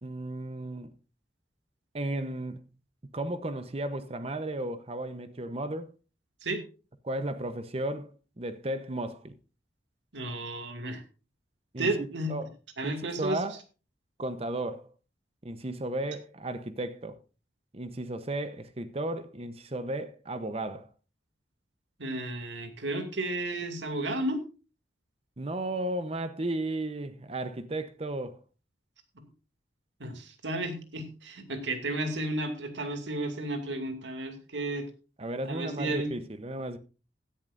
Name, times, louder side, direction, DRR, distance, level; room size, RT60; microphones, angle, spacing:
voice 1, 0.0-0.9 1.9-2.7 3.1-5.9 7.0-9.3 11.7-12.5 12.8-13.6 14.2-14.9 15.4-17.2 17.7-20.9 25.4-28.4 35.2-36.8, right 1 dB, 35° right, 0.9 m, -34 dB
voice 2, 10.1-11.0 11.8-12.3 12.8-13.4 22.0-24.4 30.0-34.8 35.5-36.1, right 1 dB, 90° right, 2.5 m, -33 dB
16.0 x 11.0 x 2.6 m
head